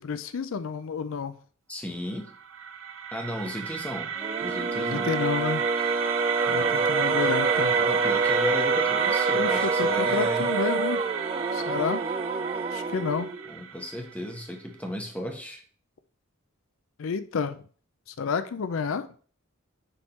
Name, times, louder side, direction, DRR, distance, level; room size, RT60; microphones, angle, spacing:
voice 1, 0.0-1.4 4.8-5.6 6.5-7.8 9.3-11.0 11.5-12.0 12.7-13.3 17.0-17.6 18.2-19.1, left 5 dB, 80° left, 11 dB, 0.4 m, -30 dB
voice 2, 1.7-2.3 3.1-4.1 4.4-5.1 6.5-6.8 7.8-10.5 13.5-15.6, equal, 5° left, 2 dB, 1.1 m, -35 dB
sound 1, 2.3-14.2, right 8 dB, 75° right, 0.7 m, -30 dB
sound 2, 4.2-13.5, right 3 dB, 30° right, 0.4 m, -27 dB
6.9 x 3.6 x 4.2 m, 0.43 s
head